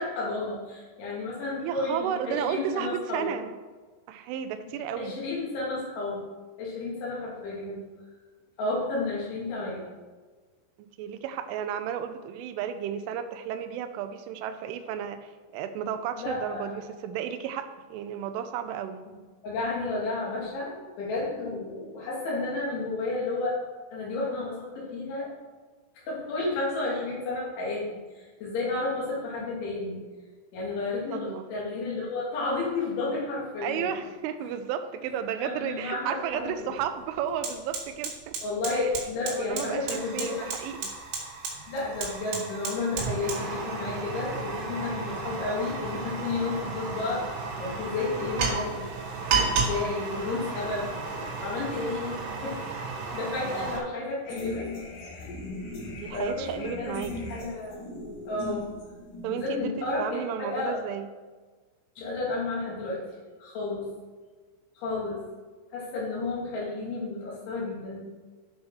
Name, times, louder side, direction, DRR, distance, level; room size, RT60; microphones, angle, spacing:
voice 1, 0.0-3.3 5.0-6.2 6.6-7.8 8.6-9.8 16.2-16.8 19.4-23.6 23.9-25.3 26.1-27.9 28.2-30.0 30.5-33.9 35.4-36.7 38.4-40.5 41.7-47.3 47.6-48.9 49.5-52.6 53.1-54.7 55.1-55.2 56.1-57.8 58.3-58.7 59.3-60.8 62.0-63.0 63.4-63.9 64.8-65.2 65.7-68.1, left 3 dB, 75° left, -5 dB, 5.1 m, -32 dB
voice 2, 1.6-3.6 4.1-5.2 10.8-19.0 31.1-31.5 33.6-38.4 38.7-38.9 39.3-40.9 49.6-49.8 53.5-53.8 55.9-57.4 59.2-59.7 60.0-61.1, right 9 dB, 85° right, 9 dB, 3.2 m, -33 dB
Fire, 36.3-36.4 36.8-53.8, right 4 dB, 70° right, 4.1 m, -33 dB
sound 1, 54.2-59.6, left 2 dB, 55° left, 2.8 m, -39 dB
11.5 x 5.2 x 6.3 m, 1.4 s
omnidirectional pair, 5.5 m